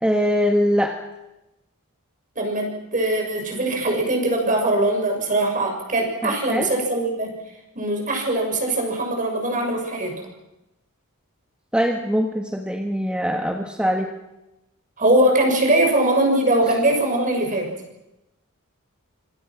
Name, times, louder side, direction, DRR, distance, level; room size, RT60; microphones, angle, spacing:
voice 1, 0.0-1.0 6.2-6.7 11.7-14.1, equal, 5° right, 2 dB, 1.7 m, -22 dB
voice 2, 2.3-7.4 7.7-10.1 15.0-17.7, right 1 dB, 35° right, 2 dB, 6.8 m, -21 dB
27.0 x 26.0 x 6.2 m, 0.95 s
head